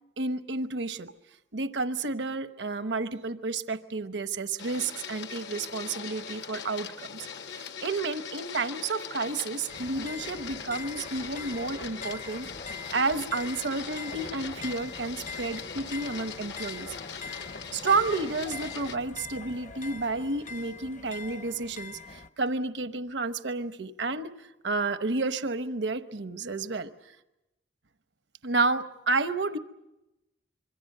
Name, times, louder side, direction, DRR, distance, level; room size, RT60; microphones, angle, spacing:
voice 1, 0.2-1.1 1.5-12.5 12.9-16.9 17.2-17.3 17.7-26.9 28.4-29.6, right 3 dB, 75° right, 11 dB, 0.9 m, -31 dB
Printer, 4.6-19.0, left 6 dB, 65° left, 1.0 m, -41 dB
sound 1, 9.7-22.3, left 4 dB, 40° left, 0.8 m, -43 dB
26.0 x 23.5 x 6.7 m, 0.93 s
head